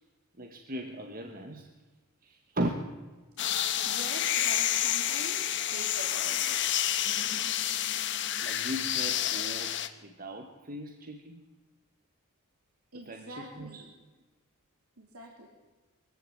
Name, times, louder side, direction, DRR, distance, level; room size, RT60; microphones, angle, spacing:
voice 1, 0.4-1.7 2.2-2.7 4.4-4.5 7.9-11.4 13.0-13.9, right 1 dB, 40° right, 4 dB, 1.7 m, -38 dB
sound 1, 3.4-9.9, left 11 dB, 55° left, 1.3 m, -29 dB
voice 2, 3.8-6.9 12.9-13.9 15.0-15.5, right 2 dB, 85° right, 0 dB, 3.5 m, -45 dB
23.5 x 15.0 x 8.9 m, 1.3 s
head